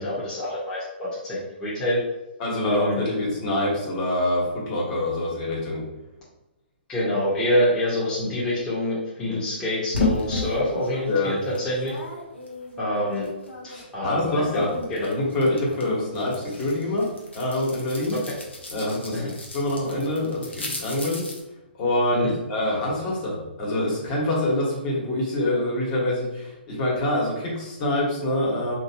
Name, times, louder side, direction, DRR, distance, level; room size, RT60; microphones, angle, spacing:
voice 1, 0.0-2.0 2.6-3.1 6.9-11.9 12.8-13.3 13.9-15.1 19.1-19.3 22.2-22.3, left 1 dB, 15° left, -10 dB, 1.0 m, -26 dB
voice 2, 2.4-5.8 11.1-11.4 13.7-14.7 15.0-17.1 17.3-18.2 18.7-21.2 21.8-28.7, left 1 dB, 40° left, -4 dB, 1.5 m, -25 dB
sound 1, 9.9-13.9 14.2-21.4, left 3 dB, 90° left, 1.0 m, -34 dB
3.3 x 2.7 x 2.9 m, 0.97 s
hypercardioid pair, 135°, 6 cm